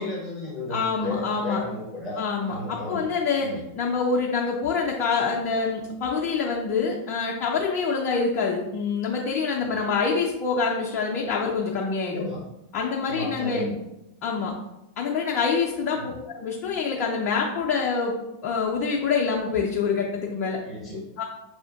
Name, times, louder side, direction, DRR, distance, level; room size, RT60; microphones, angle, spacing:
voice 1, 0.0-3.0 3.4-3.6 9.6-9.8 12.1-12.4 12.8-13.7 15.9-16.1 20.6-21.0, left 1 dB, 20° right, -6 dB, 1.3 m, -34 dB
voice 2, 0.7-1.6 2.2-12.2 12.7-13.6 14.2-14.5 15.0-16.0 16.3-18.1 18.4-20.6 21.2-21.3, left 5 dB, 40° left, -2 dB, 0.6 m, -26 dB
6.3 x 2.5 x 2.5 m, 0.91 s
figure-of-eight pair, 90°, 0 cm